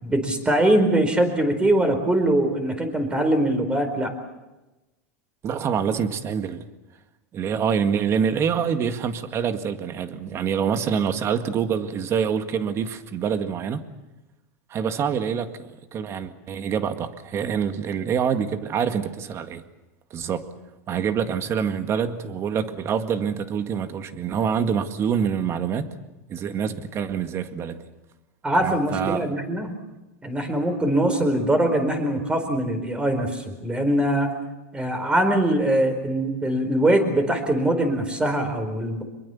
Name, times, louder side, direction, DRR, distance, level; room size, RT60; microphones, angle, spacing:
voice 1, 0.0-4.1 28.4-29.7 30.2-34.3 34.7-39.0, right 1 dB, 10° right, 4.6 m, -22 dB
voice 2, 5.4-6.6 7.3-13.9 14.7-19.6 20.1-20.4 20.9-25.9 26.3-27.8 28.6-29.3, right 7 dB, 35° right, 1.9 m, -26 dB
25.5 x 22.5 x 7.2 m
supercardioid pair, 130°, 8 cm